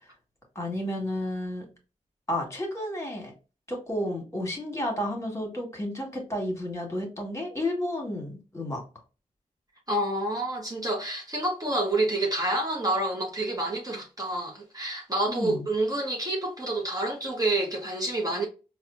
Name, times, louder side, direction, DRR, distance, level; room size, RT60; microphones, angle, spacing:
voice 1, 0.5-1.7 2.3-3.3 3.7-8.8 15.3-15.7, left 1 dB, 20° left, 1.7 m, -31 dB
voice 2, 9.9-18.5, right 2 dB, 25° right, 1.1 m, -28 dB
4.2 x 2.3 x 2.6 m
cardioid pair, 50°, 14 cm